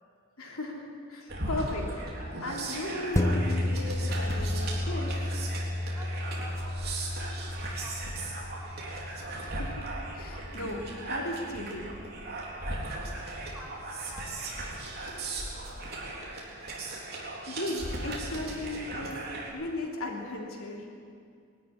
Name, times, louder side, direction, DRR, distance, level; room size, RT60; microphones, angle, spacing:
voice 1, 0.4-5.3 9.4-9.9 10.1-11.9 17.5-19.2 19.5-20.9, left 1 dB, 75° left, 0 dB, 3.2 m, -36 dB
sound 1, 1.3-19.5, right 2 dB, 45° right, 3.8 m, -37 dB
sound 2, 3.1-12.0 12.4-12.5, left 1 dB, 15° left, 0.5 m, -33 dB
voice 2, 5.9-9.1 13.1-15.8 16.1-16.4, right 1 dB, 10° right, -5 dB, 4.3 m, -51 dB
20.5 x 13.0 x 9.8 m, 2.3 s
head